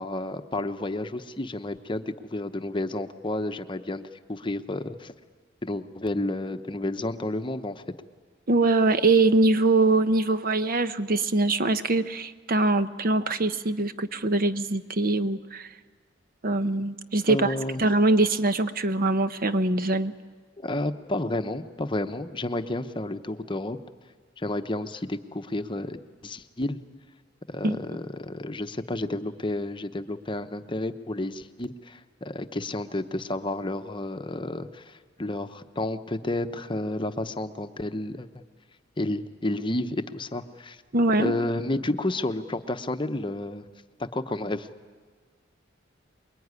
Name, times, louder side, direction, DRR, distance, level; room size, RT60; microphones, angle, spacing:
voice 1, 0.0-2.0 2.3-4.0 4.3-5.1 5.6-7.8 17.3-17.8 20.6-23.8 24.4-26.8 27.5-38.3 39.0-40.8 41.2-43.7 44.0-44.7, left 1 dB, 25° left, 8 dB, 0.8 m, -31 dB
voice 2, 8.5-15.7 16.4-20.1 27.6-27.8 40.9-41.3, right 2 dB, 50° right, 11 dB, 0.8 m, -23 dB
24.0 x 22.0 x 9.7 m, 1.5 s
head